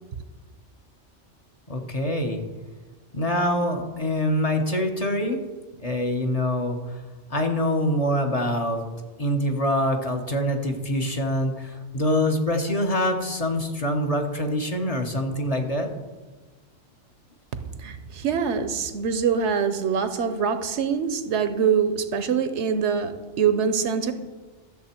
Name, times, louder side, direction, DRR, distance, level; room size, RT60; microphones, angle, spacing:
voice 1, 1.7-2.4 3.1-5.4 5.8-7.0 7.3-8.8 9.2-15.9, left 1 dB, 35° left, 3 dB, 1.0 m, -25 dB
voice 2, 17.8-24.1, right 6 dB, 75° right, 10 dB, 1.0 m, -24 dB
13.0 x 6.9 x 4.4 m, 1.3 s
omnidirectional pair, 1.2 m